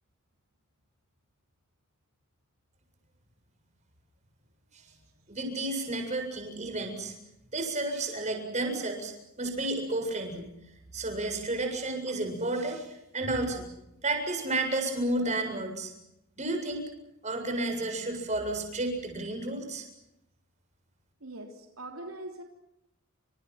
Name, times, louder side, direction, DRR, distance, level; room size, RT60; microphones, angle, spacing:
voice 1, 5.3-7.1 7.5-9.1 9.4-10.5 10.9-13.7 14.0-15.9 16.4-16.8 17.2-19.9, right 2 dB, 35° right, 7.5 m, -31 dB
voice 2, 21.2-22.4, right 2 dB, 80° right, 3.4 m, -42 dB
30.0 x 27.5 x 5.9 m
head